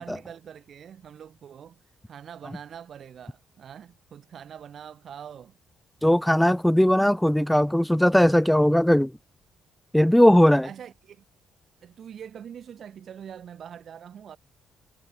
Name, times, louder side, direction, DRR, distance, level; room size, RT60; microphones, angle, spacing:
voice 1, 0.0-1.8 2.1-5.6 10.6-11.2 11.8-14.4, right 8 dB, 60° right, 4.3 m, -43 dB
voice 2, 6.0-9.1 9.9-10.7, equal, 5° left, 0.5 m, -19 dB
cardioid pair, 90°, 0 cm